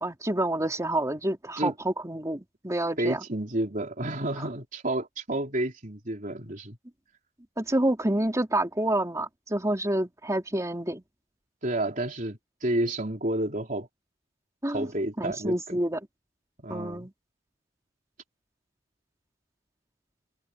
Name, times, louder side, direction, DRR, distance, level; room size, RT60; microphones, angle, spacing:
voice 1, 0.0-3.2 7.6-11.0 14.6-14.9 15.2-16.0 16.7-17.1, right 1 dB, 15° right, 3.1 m, -28 dB
voice 2, 3.0-6.8 11.6-13.9 14.7-15.8 16.6-17.1, right 1 dB, 45° right, 4.2 m, -30 dB
head